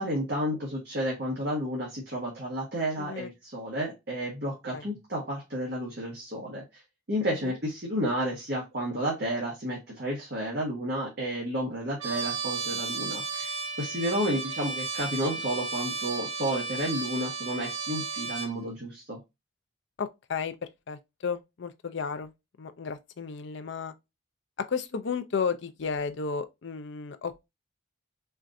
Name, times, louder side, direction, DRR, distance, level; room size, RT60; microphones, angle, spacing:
voice 1, 0.0-6.6 7.1-19.2, equal, 50° right, 1.1 m, -31 dB
voice 2, 3.0-3.3 4.7-4.8 7.3-7.5 14.2-14.4 20.0-22.3 22.6-23.9 24.7-27.3, left 5 dB, 60° left, 0.4 m, -33 dB
Trumpet, 12.0-18.5, right 4 dB, 85° right, 0.9 m, -34 dB
4.4 x 2.5 x 2.5 m
head